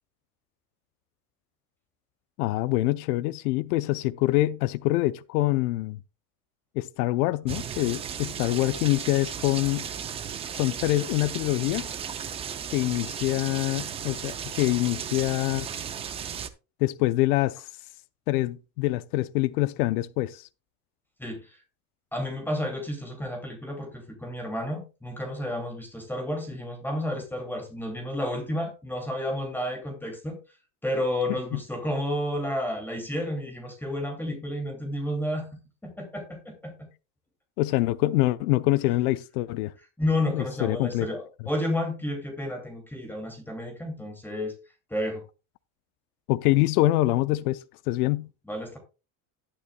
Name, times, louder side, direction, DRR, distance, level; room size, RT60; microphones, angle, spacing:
voice 1, 2.4-6.0 6.8-9.9 10.5-11.9 12.7-15.7 16.8-17.7 18.3-20.5 37.6-39.7 40.4-41.1 46.3-48.3, left 17 dB, 85° left, 0.7 m, -25 dB
sound 1, 7.5-16.5, right 8 dB, 15° right, 0.3 m, -35 dB
voice 2, 21.2-21.6 22.1-30.4 30.8-35.5 35.8-36.9 40.0-44.5 44.9-45.2 48.5-48.8, left 1 dB, 5° left, 2.5 m, -31 dB
11.5 x 11.0 x 2.2 m
cardioid pair, 160°, 44 cm